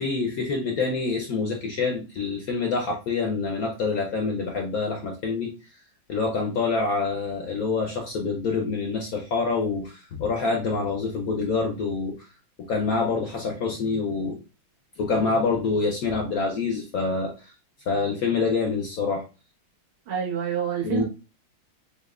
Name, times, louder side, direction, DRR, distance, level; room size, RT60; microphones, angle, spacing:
voice 1, 0.0-5.5 6.1-12.3 12.7-14.4 15.0-17.5 17.9-19.2 20.8-21.0, left 4 dB, 75° left, 2 dB, 0.8 m, -26 dB
voice 2, 20.1-21.0, right 9 dB, 80° right, -4 dB, 2.2 m, -28 dB
6.9 x 2.4 x 2.3 m, 0.31 s
omnidirectional pair, 2.3 m